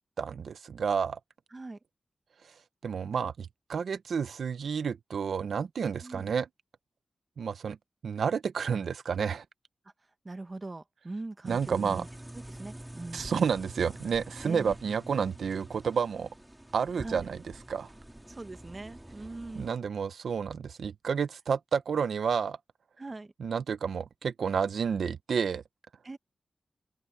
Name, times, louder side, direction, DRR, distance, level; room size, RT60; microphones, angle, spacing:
voice 1, 0.2-1.2 2.8-6.5 7.4-7.8 8.0-9.4 11.5-12.0 13.1-16.3 16.7-17.4 17.7-17.9 19.6-22.6 23.4-25.6, right 6 dB, 85° right, 0.6 m, -30 dB
voice 2, 6.0-6.3 10.2-12.1 12.3-13.3 14.4-14.8 16.9-17.3 18.3-19.8 23.0-23.3 26.0-26.2, right 2 dB, 25° right, 1.0 m, -41 dB
sound 1, 11.4-19.7, right 1 dB, 10° right, 3.0 m, -46 dB
open air
wide cardioid pair, 180°, 0 cm